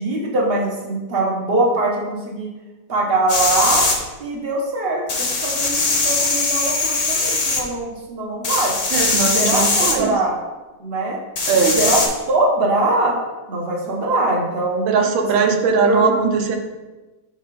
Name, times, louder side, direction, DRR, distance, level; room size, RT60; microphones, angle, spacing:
voice 1, 0.0-2.5 2.9-3.9 4.2-8.7 9.3-10.4 10.8-11.2 11.7-12.0 12.3-13.2 13.5-14.9 15.3-15.6 15.8-16.0, right 2 dB, 40° right, -2 dB, 0.9 m, -22 dB
sound 1, 3.3-4.0 5.1-7.6 8.4-9.9 11.4-12.1, left 3 dB, 50° left, 1.0 m, -20 dB
voice 2, 8.9-10.1 11.5-11.8 14.9-16.6, right 5 dB, 80° right, 4 dB, 1.4 m, -19 dB
5.4 x 3.6 x 5.1 m, 1.2 s
omnidirectional pair, 2.1 m